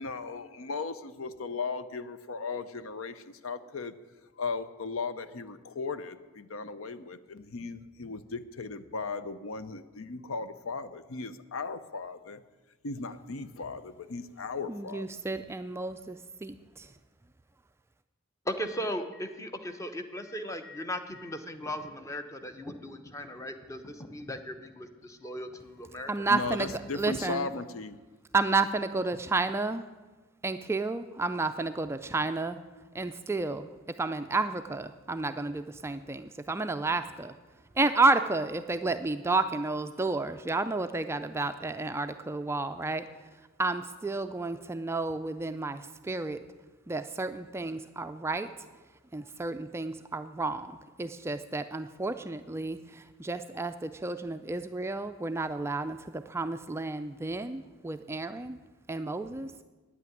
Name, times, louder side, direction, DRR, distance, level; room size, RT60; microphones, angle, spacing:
voice 1, 0.0-3.9 4.4-12.4 12.8-15.1 26.3-28.0, left 4 dB, 70° left, 12 dB, 0.6 m, -37 dB
voice 2, 14.7-16.9 26.1-27.5 28.3-29.8 30.4-32.6 32.9-33.7 34.0-37.4 37.8-43.0 43.6-46.4 46.9-48.7 49.1-58.6 58.9-59.5, right 3 dB, 10° right, 9 dB, 0.3 m, -31 dB
voice 3, 18.4-26.1, equal, 15° left, 8 dB, 0.8 m, -37 dB
9.7 x 8.4 x 9.2 m, 1.2 s
head